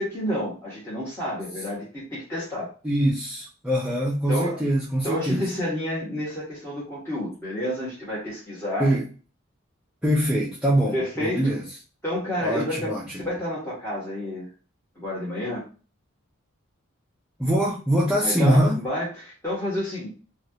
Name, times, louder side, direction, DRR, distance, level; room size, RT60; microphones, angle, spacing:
voice 1, 0.0-2.7 4.3-4.6 5.0-9.0 10.9-11.5 12.0-14.5 15.0-15.6 18.2-20.1, left 1 dB, 10° left, -9 dB, 1.0 m, -30 dB
voice 2, 2.8-5.5 8.8-9.1 10.0-11.6 12.4-13.2 17.4-18.8, equal, 5° right, -7 dB, 0.5 m, -23 dB
3.0 x 2.3 x 2.7 m, 0.35 s
head